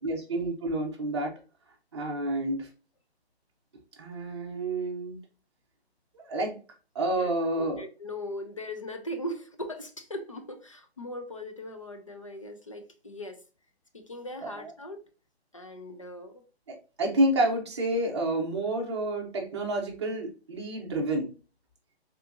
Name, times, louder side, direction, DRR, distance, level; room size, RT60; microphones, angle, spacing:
voice 1, 0.0-1.4 1.9-2.7 4.0-5.2 6.1-6.6 6.9-7.8 14.4-14.7 16.7-21.3, right 1 dB, 25° right, 0.7 m, -29 dB
voice 2, 7.6-13.4 13.9-15.0 15.5-16.4, left 1 dB, 30° left, 0.4 m, -39 dB
3.5 x 2.8 x 2.5 m
hypercardioid pair, 165°, 33 cm